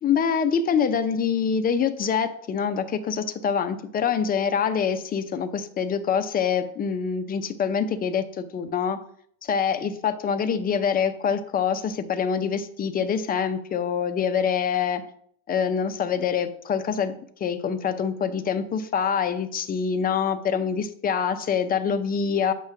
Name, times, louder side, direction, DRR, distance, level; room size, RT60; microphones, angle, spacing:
voice 1, 0.0-9.0 9.4-15.0 15.5-17.2 17.4-22.5, left 7 dB, 25° left, 9 dB, 0.5 m, -25 dB
7.6 x 3.0 x 5.7 m, 0.62 s
supercardioid pair, 125°, 38 cm